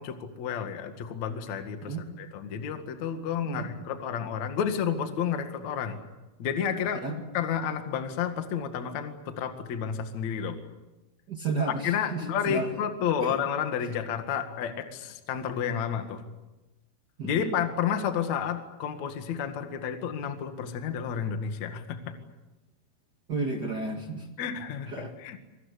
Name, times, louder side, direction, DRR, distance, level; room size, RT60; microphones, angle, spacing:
voice 1, 0.0-6.0 6.4-7.0 7.3-10.6 11.8-16.2 17.2-22.1 24.4-25.4, left 8 dB, 50° left, 7 dB, 2.5 m, -31 dB
voice 2, 11.3-12.7 13.2-13.4 17.2-17.6 23.3-24.3 24.9-25.1, right 3 dB, 70° right, 3 dB, 0.9 m, -32 dB
26.5 x 22.0 x 8.4 m, 1.1 s
omnidirectional pair, 5.6 m